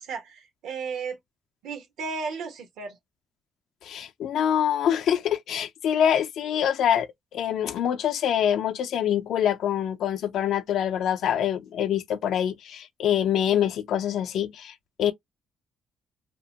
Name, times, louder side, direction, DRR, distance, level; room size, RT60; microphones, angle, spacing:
voice 1, 0.0-1.2 1.6-3.0, right 5 dB, 85° right, 0.9 m, -34 dB
voice 2, 3.8-15.1, left 9 dB, 75° left, 0.4 m, -25 dB
2.9 x 2.1 x 2.8 m
cardioid pair, 90°, 0 cm